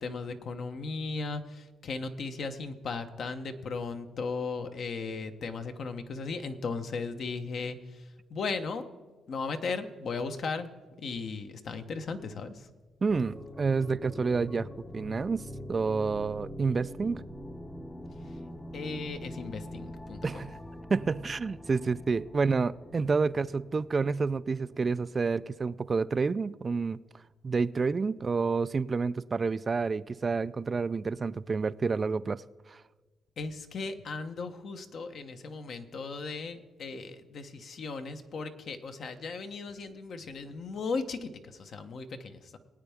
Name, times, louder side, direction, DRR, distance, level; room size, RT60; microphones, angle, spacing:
voice 1, 0.0-8.9 9.3-10.7 11.0-12.7 18.7-20.5 33.4-42.6, left 4 dB, 60° left, 1.0 m, -36 dB
voice 2, 13.0-14.7 14.9-15.4 15.7-17.2 20.2-20.5 20.9-27.0 27.4-32.4 32.7-32.8, right 4 dB, 35° right, 0.3 m, -29 dB
sound 1, 13.1-25.8, equal, 15° left, 0.8 m, -44 dB
21.0 x 9.0 x 3.6 m
cardioid pair, 90°, 0 cm